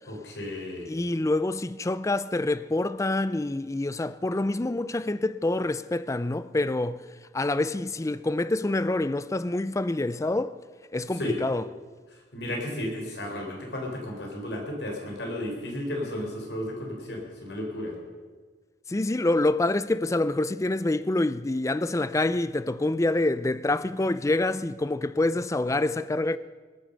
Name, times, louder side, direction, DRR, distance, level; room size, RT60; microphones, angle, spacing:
voice 1, 0.1-0.9 11.2-11.4 12.3-18.0, left 1 dB, 75° left, 3.9 m, -33 dB
voice 2, 0.9-7.0 7.3-10.5 10.9-11.6 18.9-26.4, left 2 dB, 20° left, 0.4 m, -26 dB
19.5 x 9.2 x 6.6 m
head